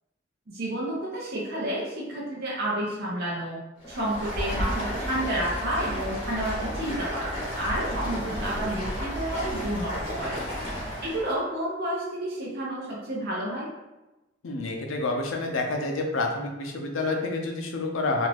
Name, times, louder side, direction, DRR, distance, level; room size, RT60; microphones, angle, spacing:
voice 1, 0.5-3.6 3.9-10.4 11.0-13.7, right 1 dB, 55° right, -5 dB, 0.7 m, -30 dB
Stream, 3.8-11.3, equal, 30° left, 1.0 m, -32 dB
voice 2, 14.4-18.3, left 3 dB, 80° left, 2 dB, 0.5 m, -28 dB
2.5 x 2.3 x 3.3 m, 1.0 s
head